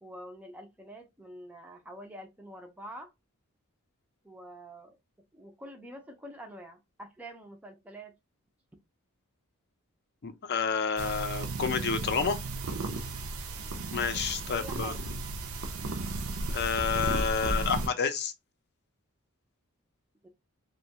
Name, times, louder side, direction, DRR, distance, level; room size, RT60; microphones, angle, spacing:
voice 1, 0.0-3.1 4.2-5.0 5.3-8.1 14.5-15.0 20.2-20.3, right 1 dB, 5° right, 0.4 m, -46 dB
voice 2, 10.2-12.4 13.9-14.9 16.5-18.3, left 6 dB, 50° left, 0.5 m, -29 dB
sound 1, 11.0-17.9, right 2 dB, 65° right, 0.5 m, -34 dB
2.8 x 2.2 x 2.7 m
head